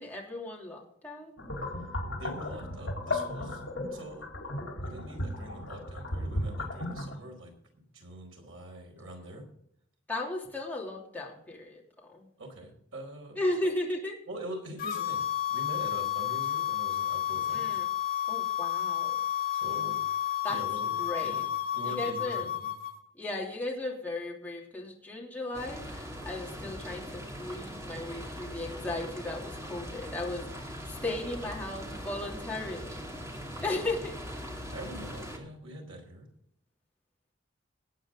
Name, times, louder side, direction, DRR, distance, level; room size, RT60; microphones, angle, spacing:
voice 1, 0.0-1.3 10.1-11.8 12.1-12.2 13.4-14.2 17.5-17.8 18.3-19.2 20.4-20.6 21.0-21.5 21.8-22.5 23.2-33.1 33.6-34.1, left 2 dB, 10° left, -3 dB, 3.0 m, -36 dB
sound 1, 1.4-7.1, left 1 dB, 70° left, 4.0 m, -35 dB
voice 2, 2.1-3.6 3.9-4.3 4.8-9.4 12.4-13.4 14.3-15.2 15.5-17.8 19.5-20.0 20.5-21.4 21.7-22.7 33.5-33.7 34.7-36.3, right 1 dB, 85° right, 2 dB, 4.8 m, -44 dB
sound 2, 14.8-22.9, left 11 dB, 45° left, 2.3 m, -31 dB
sound 3, 25.5-35.4, equal, 15° right, 2.4 m, -41 dB
19.0 x 8.9 x 3.8 m, 0.69 s
head